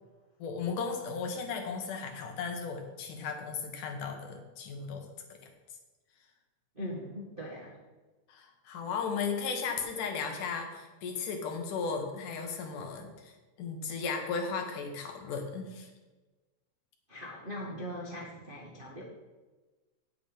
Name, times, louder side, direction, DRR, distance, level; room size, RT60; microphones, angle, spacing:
voice 1, 0.4-5.4 6.8-6.9 8.3-15.9, left 5 dB, 85° left, 3 dB, 2.9 m, -36 dB
voice 2, 6.7-7.8 17.1-19.1, equal, 40° right, -4 dB, 0.7 m, -40 dB
9.3 x 8.0 x 5.3 m, 1.2 s
omnidirectional pair, 3.6 m